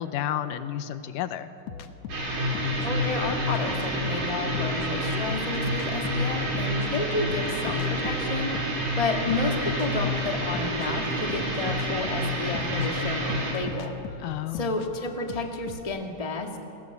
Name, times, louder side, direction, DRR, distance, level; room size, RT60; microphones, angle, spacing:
voice 1, 0.0-1.5 14.2-14.8, left 11 dB, 85° left, 11 dB, 2.4 m, -31 dB
sound 1, 1.7-4.9 5.2-8.8 9.3-15.8, left 6 dB, 60° left, 1.9 m, -40 dB
sound 2, 2.1-13.5, equal, 75° right, 7.1 m, -28 dB
voice 2, 2.8-13.9 14.5-16.6, left 3 dB, 15° left, 3 dB, 1.7 m, -31 dB
29.0 x 21.0 x 8.2 m, 3.0 s
omnidirectional pair, 3.8 m